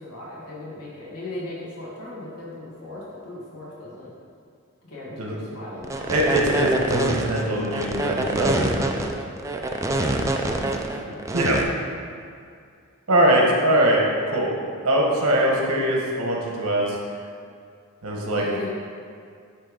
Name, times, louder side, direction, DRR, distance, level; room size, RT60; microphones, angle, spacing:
voice 1, 0.0-4.1 4.8-6.4 10.0-10.2 10.6-11.2 18.3-18.7, left 1 dB, 90° left, -7 dB, 1.8 m, -38 dB
sound 1, 5.8-11.6, right 2 dB, 15° right, 0.4 m, -25 dB
voice 2, 6.1-8.9 11.3-11.6 13.1-14.5 14.8-17.0 18.0-18.4, right 1 dB, 85° right, -2 dB, 1.4 m, -22 dB
9.9 x 3.4 x 5.0 m, 2.3 s
head